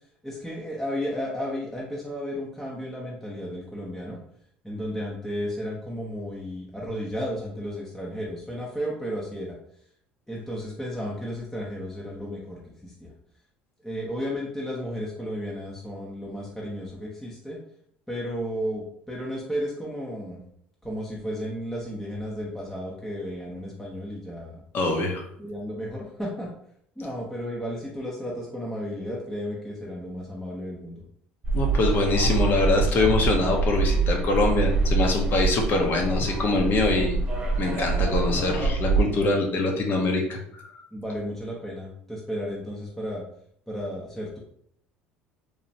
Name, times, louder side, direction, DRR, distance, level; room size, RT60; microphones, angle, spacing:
voice 1, 0.2-4.2 4.6-9.6 10.3-13.1 13.8-17.6 18.1-20.4 20.8-24.6 25.4-26.5 27.0-31.0 40.9-43.2 43.7-44.4, equal, 5° left, -5 dB, 0.6 m, -33 dB
voice 2, 24.7-25.2 31.5-37.2 37.6-40.7, left 2 dB, 50° left, 2 dB, 0.7 m, -24 dB
sound 1, 31.4-39.0, right 3 dB, 20° right, 1.0 m, -25 dB
3.0 x 2.1 x 2.7 m, 0.68 s
supercardioid pair, 90°, 4 cm